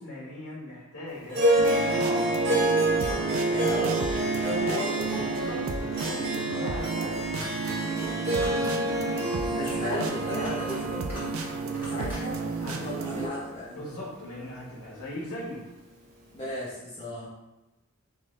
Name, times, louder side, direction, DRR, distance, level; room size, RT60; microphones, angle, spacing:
voice 1, 0.0-1.5 1.9-2.3 2.9-3.3 5.3-5.6 5.9-7.2 7.5-10.1 12.6-13.1 13.7-15.6, left 1 dB, 85° left, -5 dB, 1.3 m, -39 dB
Harp, 1.3-13.9, right 1 dB, 45° right, 0.9 m, -28 dB
sound 1, 1.6-13.3, right 5 dB, 70° right, 0.4 m, -33 dB
voice 2, 3.3-5.6 9.5-11.4 11.8-13.7 16.3-17.3, left 1 dB, 25° left, -11 dB, 0.8 m, -35 dB
sound 2, 7.4-7.7 8.3-8.7 10.3-10.8 11.1-11.5 11.7-12.2, equal, 10° right, 1.2 m, -42 dB
3.8 x 2.4 x 3.2 m, 1.0 s
head